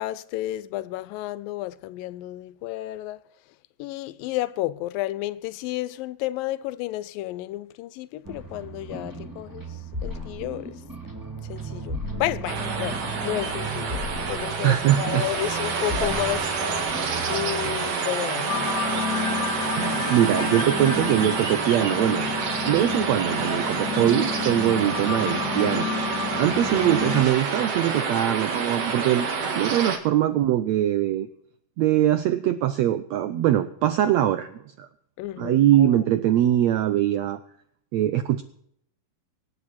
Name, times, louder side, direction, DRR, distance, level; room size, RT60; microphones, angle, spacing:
voice 1, 0.0-3.2 3.8-10.8 11.4-14.0 14.3-16.6 17.3-18.8 20.4-20.5 35.2-36.0, left 15 dB, 85° left, 2.4 m, -32 dB
sound 1, 8.3-17.9, right 1 dB, 5° right, 1.8 m, -35 dB
sound 2, 12.5-30.0, right 5 dB, 50° right, 2.5 m, -28 dB
voice 2, 14.6-15.3 19.7-22.3 22.6-25.9 26.4-29.3 29.6-31.3 31.8-34.9 35.4-37.4 37.9-38.4, right 12 dB, 85° right, 1.5 m, -22 dB
sound 3, 18.5-27.2, left 6 dB, 35° left, 2.7 m, -30 dB
24.5 x 9.1 x 4.3 m
omnidirectional pair, 3.9 m